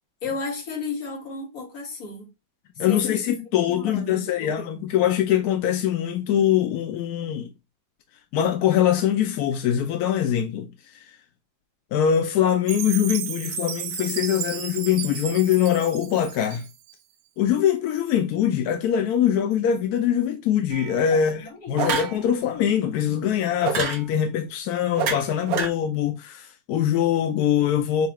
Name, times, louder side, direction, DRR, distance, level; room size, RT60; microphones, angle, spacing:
voice 1, 0.2-2.3 2.8-3.2 3.7-4.8 21.1-21.8, left 4 dB, 50° left, 1.8 m, -34 dB
voice 2, 2.8-7.5 8.3-10.7 11.9-16.7 17.4-28.1, left 9 dB, 70° left, 0.9 m, -23 dB
Chime, 12.7-16.9, right 10 dB, 90° right, 1.4 m, -33 dB
sound 1, 20.7-21.0 21.8-22.2 23.6-24.0 24.9-25.7, right 6 dB, 55° right, 1.2 m, -26 dB
6.6 x 2.3 x 3.0 m
omnidirectional pair, 2.1 m